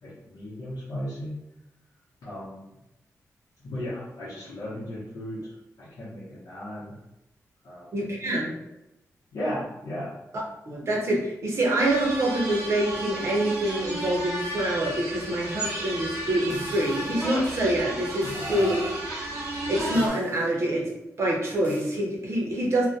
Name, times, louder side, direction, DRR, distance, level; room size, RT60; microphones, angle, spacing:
voice 1, 0.0-1.4 2.2-2.6 3.6-7.0 7.6-7.9 8.3-8.5 9.3-10.1 18.3-19.0, equal, 75° left, -10 dB, 0.8 m, -36 dB
voice 2, 7.9-8.6 10.7-18.8 19.7-20.9 21.2-22.9, right 1 dB, 50° right, -2 dB, 0.6 m, -26 dB
sound 1, 11.8-20.1, right 1 dB, 85° right, 0.8 m, -33 dB
sound 2, 16.5-17.3 18.2-18.9 19.9-20.5 21.6-22.0, left 2 dB, 35° left, 0.5 m, -42 dB
2.3 x 2.1 x 2.6 m, 0.90 s
wide cardioid pair, 145°, 6 cm